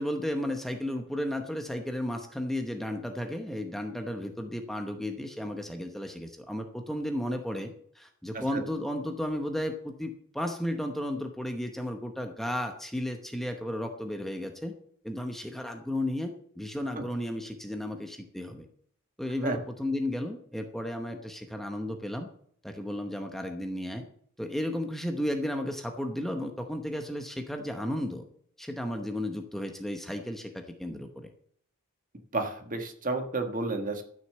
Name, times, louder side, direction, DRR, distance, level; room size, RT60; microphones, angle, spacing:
voice 1, 0.0-14.7 15.0-18.7 19.2-22.3 22.6-24.0 24.4-28.2 28.6-31.3, left 1 dB, ahead, 4 dB, 0.9 m, -34 dB
voice 2, 32.3-34.0, right 3 dB, 40° right, 5 dB, 1.5 m, -31 dB
12.5 x 6.5 x 6.7 m, 0.63 s
head